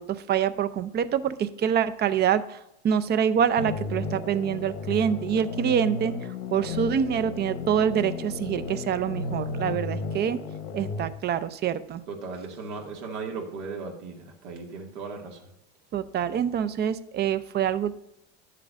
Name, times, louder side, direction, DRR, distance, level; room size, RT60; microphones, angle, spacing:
voice 1, 0.0-2.6 2.8-6.1 6.5-10.4 10.7-12.0 15.9-18.0, right 8 dB, 30° right, 14 dB, 0.5 m, -26 dB
sound 1, 3.6-11.1, left 4 dB, 75° left, 1.2 m, -34 dB
voice 2, 12.1-15.5, right 4 dB, 80° right, 1 dB, 2.1 m, -37 dB
10.5 x 7.5 x 2.5 m, 0.86 s
supercardioid pair, 115°, 34 cm